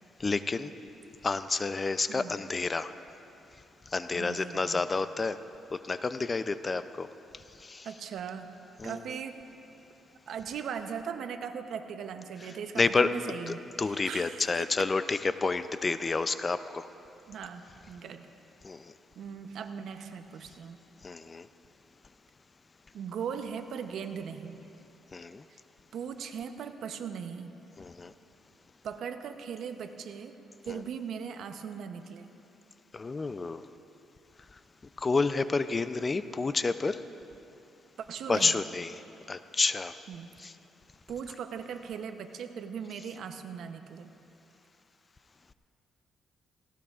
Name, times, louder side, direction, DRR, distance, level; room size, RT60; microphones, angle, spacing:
voice 1, 0.2-0.7 1.2-2.9 3.9-5.4 5.8-7.1 7.6-7.9 8.8-9.0 12.8-16.9 18.6-18.9 21.0-21.5 25.1-25.4 27.8-28.1 30.7-30.8 32.9-33.6 35.0-37.0 38.3-39.0 39.3-39.9 40.4-40.5, left 4 dB, 30° left, 12 dB, 0.4 m, -29 dB
voice 2, 4.1-4.8 7.8-8.5 8.8-9.4 10.3-14.5 17.3-18.3 19.2-20.8 22.9-24.6 25.5-25.6 25.9-27.5 28.8-30.4 30.7-32.3 38.0-38.6 40.1-40.3 41.1-44.1, right 7 dB, 70° right, 8 dB, 0.7 m, -39 dB
17.5 x 17.0 x 2.4 m, 2.8 s
cardioid pair, 90°, 0 cm